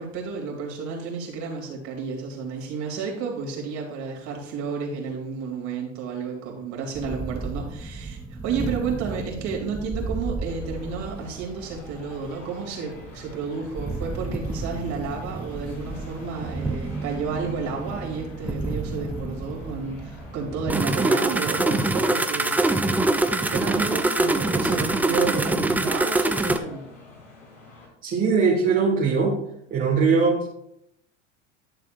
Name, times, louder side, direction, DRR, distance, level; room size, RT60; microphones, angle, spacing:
voice 1, 0.0-23.0 23.4-26.8, right 5 dB, 50° right, 0 dB, 2.8 m, -31 dB
sound 1, 6.9-26.6, right 2 dB, 5° right, 0.4 m, -27 dB
sound 2, 10.4-27.9, left 3 dB, 85° left, 2.9 m, -47 dB
voice 2, 28.0-29.4 29.7-30.5, right 5 dB, 30° right, -3 dB, 1.7 m, -21 dB
11.5 x 6.9 x 2.5 m, 0.77 s
hypercardioid pair, 90°, 37 cm